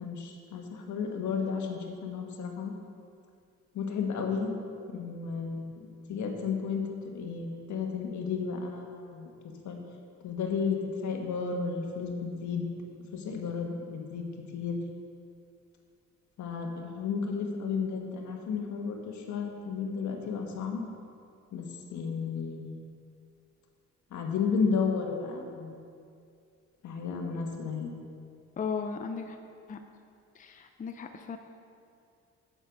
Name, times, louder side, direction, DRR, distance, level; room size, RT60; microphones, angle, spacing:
voice 1, 0.0-2.7 3.7-4.5 4.9-9.3 9.6-9.8 10.2-12.6 13.1-14.2 14.5-14.8 16.4-20.8 21.5-21.7 21.9-22.9 24.1-25.8 26.8-27.9, left 5 dB, 70° left, 2 dB, 1.2 m, -33 dB
voice 2, 28.6-29.4 29.7-29.8 30.3-31.4, left 5 dB, 25° left, 5 dB, 0.5 m, -36 dB
7.8 x 6.8 x 5.1 m, 2.4 s
cardioid pair, 90°, 30 cm